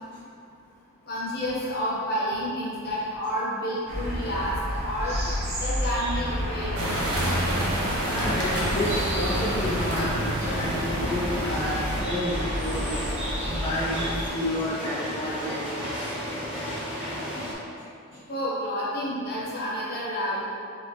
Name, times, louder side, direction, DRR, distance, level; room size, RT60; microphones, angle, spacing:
voice 1, 1.1-5.3 5.6-6.8 18.3-20.4, equal, 45° left, -7 dB, 1.1 m, -29 dB
sound 1, 3.9-14.3, equal, 30° right, 1.0 m, -30 dB
sound 2, 6.8-12.0, right 1 dB, 75° right, 0.9 m, -30 dB
sound 3, 8.0-17.5, equal, 5° right, 0.7 m, -33 dB
voice 2, 8.1-16.1 17.8-17.9 18.1-18.2, left 1 dB, 25° left, -9 dB, 0.5 m, -31 dB
4.2 x 3.7 x 2.9 m, 2.5 s
head